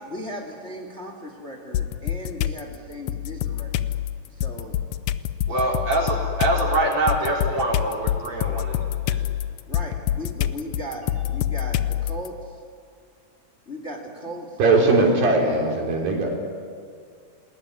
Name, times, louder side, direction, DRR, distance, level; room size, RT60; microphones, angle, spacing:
voice 1, 0.0-3.7 4.3-4.8 5.5-5.7 9.7-12.6 13.7-15.8, equal, 20° left, 3 dB, 2.4 m, -37 dB
sound 1, 1.7-2.6 3.1-12.3, left 11 dB, 80° left, 1.6 m, -26 dB
voice 2, 5.5-9.2, right 2 dB, 50° right, 0 dB, 5.4 m, -25 dB
voice 3, 14.6-16.3, right 3 dB, 80° right, 0 dB, 5.6 m, -19 dB
27.5 x 20.5 x 9.7 m, 2.2 s
omnidirectional pair, 4.0 m